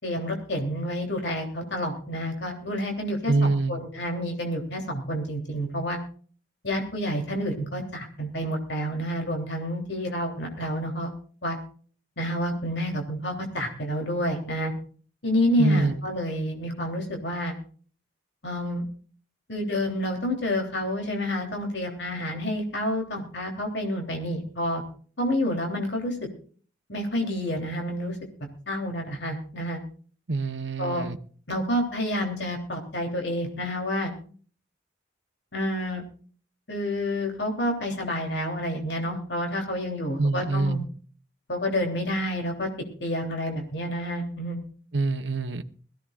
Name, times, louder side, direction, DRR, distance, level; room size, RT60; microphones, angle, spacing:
voice 1, 0.0-6.0 6.6-11.1 11.4-11.6 12.2-14.7 15.2-17.6 18.4-18.8 19.5-24.8 25.2-26.1 26.9-28.2 28.7-29.8 30.8-31.1 31.5-34.1 35.5-36.0 36.7-40.8 41.5-42.7 43.0-44.6, equal, 65° left, 2 dB, 3.4 m, -29 dB
voice 2, 3.3-3.8 15.6-15.9 30.3-31.2 40.2-40.9 44.9-45.6, right 3 dB, 70° right, 10 dB, 1.0 m, -25 dB
21.5 x 15.5 x 2.5 m, 0.43 s
head